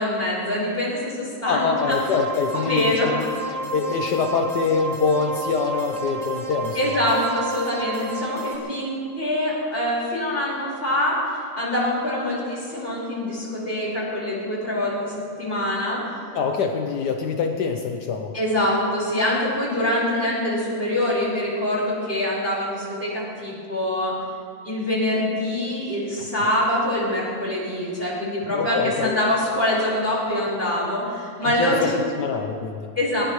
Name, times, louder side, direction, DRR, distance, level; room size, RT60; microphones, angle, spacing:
voice 1, 0.0-2.0 2.5-3.1 6.8-16.3 18.3-24.2 24.6-31.9 33.0-33.2, left 1 dB, 30° left, -6 dB, 5.3 m, -24 dB
voice 2, 1.5-3.2 3.7-6.9 16.3-18.3 26.3-26.4 28.5-29.2 31.4-32.9, left 5 dB, 70° left, 3 dB, 1.4 m, -25 dB
sound 1, 1.8-8.6, right 1 dB, 20° right, 1.7 m, -31 dB
20.5 x 19.5 x 3.2 m, 2.4 s
omnidirectional pair, 1.9 m